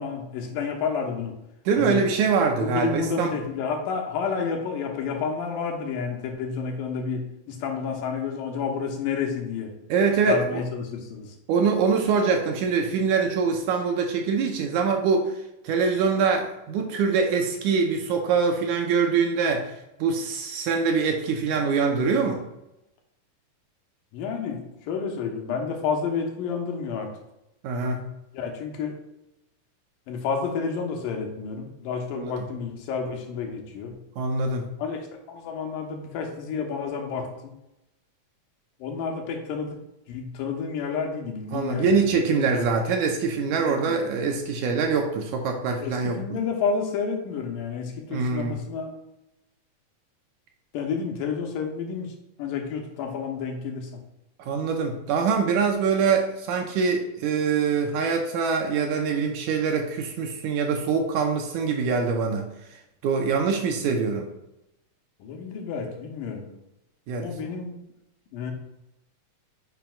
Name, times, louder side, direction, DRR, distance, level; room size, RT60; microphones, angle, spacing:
voice 1, 0.0-1.3 1.8-2.0 2.6-9.7 10.3-11.3 24.1-27.1 28.3-28.9 30.1-34.0 34.8-37.5 38.8-39.8 40.1-42.7 43.7-44.0 45.8-48.9 50.7-52.1 52.4-53.9 65.2-66.5 67.2-67.8 68.3-68.5, left 5 dB, 85° left, 2 dB, 2.7 m, -30 dB
voice 2, 1.7-3.3 9.9-10.6 11.5-15.4 15.6-19.7 20.0-22.4 27.6-28.1 32.1-32.4 34.2-34.7 41.5-46.2 48.1-48.6 54.4-62.5 63.0-64.3 67.1-67.3, right 5 dB, 75° right, 3 dB, 1.9 m, -24 dB
9.3 x 5.9 x 2.3 m, 0.88 s
omnidirectional pair, 3.8 m